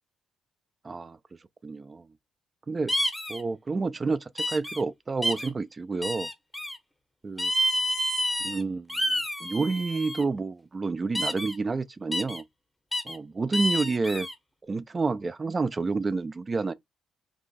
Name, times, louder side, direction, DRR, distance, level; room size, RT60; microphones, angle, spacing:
voice 1, 0.8-1.2 1.6-2.1 2.7-2.9 3.3-6.3 7.2-7.5 8.4-8.9 9.4-12.4 13.0-14.3 14.7-16.7, right 3 dB, 30° right, 0.3 m, -29 dB
sound 1, 2.9-3.4 4.4-4.8 5.2-5.5 6.0-6.8 7.4-8.6 8.9-10.2 11.1-11.5 12.1-12.4 12.9-13.2 13.5-14.3, equal, 5° left, 0.7 m, -29 dB
2.9 x 2.4 x 3.9 m
cardioid pair, 90°, 0 cm